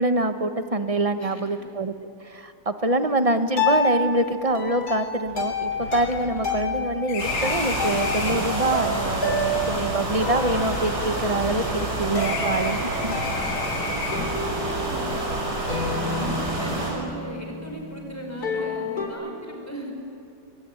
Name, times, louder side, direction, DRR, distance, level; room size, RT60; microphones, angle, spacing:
voice 1, 0.0-13.2, right 2 dB, 25° right, 9 dB, 1.0 m, -25 dB
sound 1, 3.4-19.1, left 2 dB, 65° left, 4.1 m, -30 dB
sound 2, 4.4-4.5 4.8-4.9 5.3-8.6 9.4-11.8 12.1-14.5, left 4 dB, 85° left, 5.6 m, -34 dB
sound 3, 7.2-16.9, right 1 dB, 75° right, 6.4 m, -28 dB
voice 2, 13.2-15.2 15.7-19.9, equal, 10° left, 1 dB, 5.0 m, -38 dB
26.5 x 21.5 x 9.3 m, 2.5 s
omnidirectional pair, 1.8 m